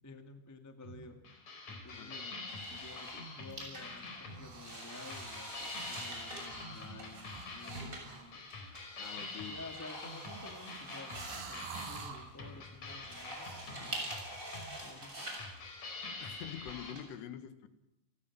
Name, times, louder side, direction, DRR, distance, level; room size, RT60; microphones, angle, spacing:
voice 1, 0.0-1.4 1.7-8.5 9.5-14.3 14.8-15.5, left 2 dB, 20° left, 0.5 m, -52 dB
sound 1, 0.8-16.9, left 3 dB, 45° left, 5.7 m, -46 dB
voice 2, 1.9-2.2 9.0-9.6 16.2-17.7, left 9 dB, 80° left, 3.7 m, -46 dB
sound 2, 2.5-17.0, right 1 dB, 20° right, 7.0 m, -46 dB
sound 3, 4.3-4.7 5.0-6.2 6.4-6.7 7.2-7.6 8.0-8.3 9.3-12.3, right 5 dB, 90° right, 5.6 m, -49 dB
29.0 x 19.5 x 6.1 m
omnidirectional pair, 4.9 m